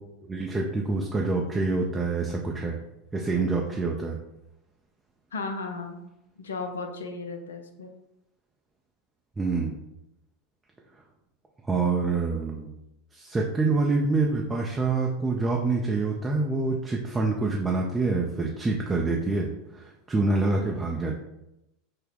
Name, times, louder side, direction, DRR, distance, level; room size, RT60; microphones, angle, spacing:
voice 1, 0.3-2.8 3.1-4.2 9.4-9.8 11.7-12.7 13.1-21.2, right 3 dB, 15° right, 0 dB, 0.4 m, -26 dB
voice 2, 5.3-6.0 6.4-7.9, left 3 dB, 80° left, 6 dB, 0.4 m, -35 dB
3.5 x 2.1 x 3.6 m, 0.88 s
figure-of-eight pair, 85°, 0 cm